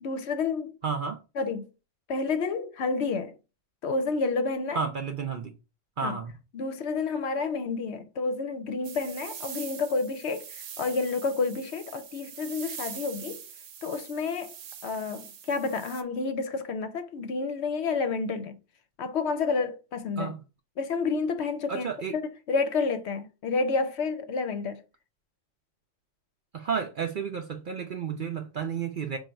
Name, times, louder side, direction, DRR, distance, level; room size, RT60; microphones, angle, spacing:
voice 1, 0.0-0.7 1.4-1.7 2.1-3.3 3.8-4.8 6.0-6.2 6.5-13.4 13.8-14.5 14.8-18.6 19.0-20.3 20.8-21.9 22.1-24.8, left 4 dB, 65° left, 0.8 m, -30 dB
voice 2, 0.8-1.2 4.7-5.5 6.0-6.3 20.2-20.4 21.7-22.1 26.5-29.2, right 6 dB, 55° right, 0.6 m, -31 dB
sound 1, 8.8-16.0, right 8 dB, 80° right, 1.0 m, -43 dB
5.0 x 2.4 x 4.3 m
omnidirectional pair, 1.3 m